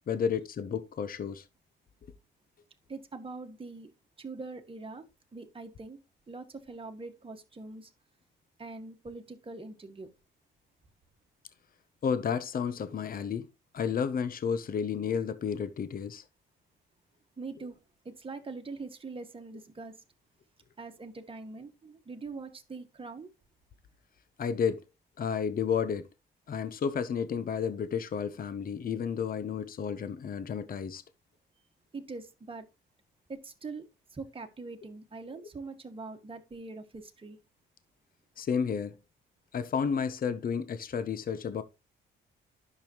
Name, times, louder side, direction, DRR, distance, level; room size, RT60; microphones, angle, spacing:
voice 1, 0.1-1.4 12.0-13.5 13.7-16.2 24.4-24.8 25.2-26.1 26.5-31.0 38.4-39.0 39.5-41.6, left 7 dB, 45° left, 0.9 m, -31 dB
voice 2, 2.9-3.9 4.2-5.1 5.3-6.0 6.3-7.9 8.6-10.1 17.4-17.8 18.1-20.0 20.8-23.3 31.9-32.7 33.3-33.9 34.1-37.4, right 3 dB, 25° right, 1.8 m, -43 dB
10.5 x 6.9 x 3.1 m
cardioid pair, 90°, 20 cm